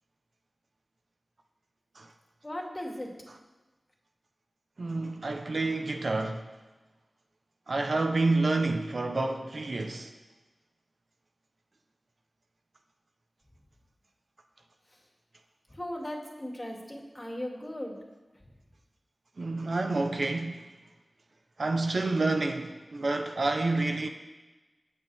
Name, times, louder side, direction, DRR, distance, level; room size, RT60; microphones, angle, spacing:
voice 1, 2.4-3.1 15.7-18.0, left 1 dB, 25° left, 2.6 m, -37 dB
voice 2, 4.8-6.5 7.7-10.1 19.4-20.7 21.6-24.1, right 2 dB, 60° right, 1.0 m, -29 dB
23.0 x 8.3 x 3.6 m
wide cardioid pair, 65°, 0 cm